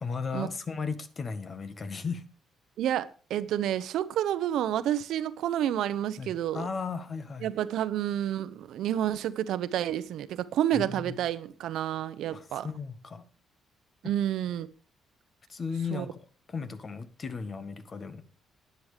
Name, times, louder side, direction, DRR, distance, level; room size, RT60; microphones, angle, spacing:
voice 1, 0.0-2.2 6.2-7.5 10.7-11.2 12.3-13.2 15.5-16.2 16.5-18.2, left 5 dB, 40° left, 1.5 m, -35 dB
voice 2, 2.8-6.7 7.4-12.7 14.0-14.7 15.9-16.1, right 11 dB, 80° right, 0.8 m, -29 dB
10.5 x 9.7 x 5.0 m
cardioid pair, 90°, 0 cm